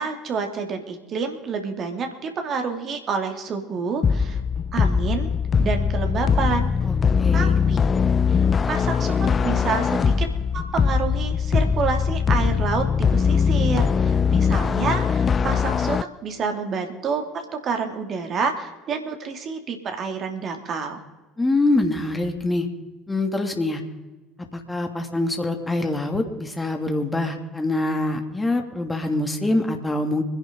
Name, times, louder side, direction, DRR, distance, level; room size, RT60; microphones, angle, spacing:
voice 1, 0.0-4.4 4.7-5.3 5.6-6.7 7.3-7.8 8.3-10.3 10.5-21.0, right 5 dB, 45° right, 5 dB, 2.7 m, -28 dB
sound 1, 4.0-16.0, left 6 dB, 30° left, 0.5 m, -21 dB
voice 2, 6.8-7.5 21.4-22.7 23.1-23.8 24.5-30.2, left 2 dB, 15° left, 4 dB, 2.8 m, -24 dB
25.5 x 11.0 x 4.0 m, 1.2 s
figure-of-eight pair, 65°, 0 cm